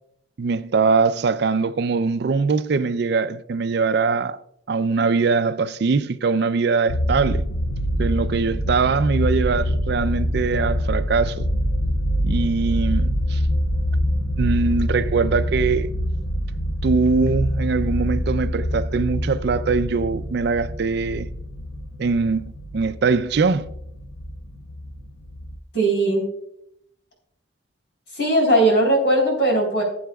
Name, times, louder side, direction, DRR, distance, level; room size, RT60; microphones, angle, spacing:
voice 1, 0.4-4.4 4.7-7.5 8.0-11.5 12.2-13.4 14.4-15.9 16.8-21.3 22.0-23.7, right 4 dB, 60° right, 0.4 m, -22 dB
sound 1, 6.9-25.6, equal, 80° left, 0.8 m, -25 dB
voice 2, 25.7-26.3 28.1-29.8, right 1 dB, 60° left, 3.8 m, -18 dB
17.0 x 7.8 x 2.3 m
head